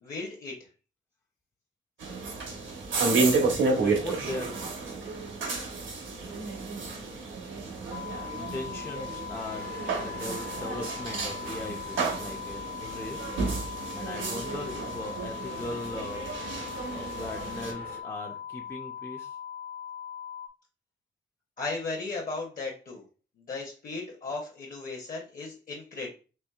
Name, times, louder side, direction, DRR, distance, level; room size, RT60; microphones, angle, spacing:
voice 1, 0.0-0.5 21.6-23.0 23.5-26.1, left 3 dB, 45° left, 0 dB, 0.7 m, -36 dB
sound 1, 2.0-17.7, right 3 dB, 80° right, 1.0 m, -31 dB
voice 2, 3.8-4.7 8.3-13.3 13.9-16.3 16.9-19.4, left 2 dB, 10° left, 0 dB, 0.3 m, -39 dB
sound 2, 7.9-20.5, left 9 dB, 80° left, 0.8 m, -40 dB
sound 3, 9.3-13.9 14.3-18.0, right 3 dB, 55° right, 0.6 m, -48 dB
4.4 x 2.9 x 2.3 m, 0.35 s
wide cardioid pair, 175°, 20 cm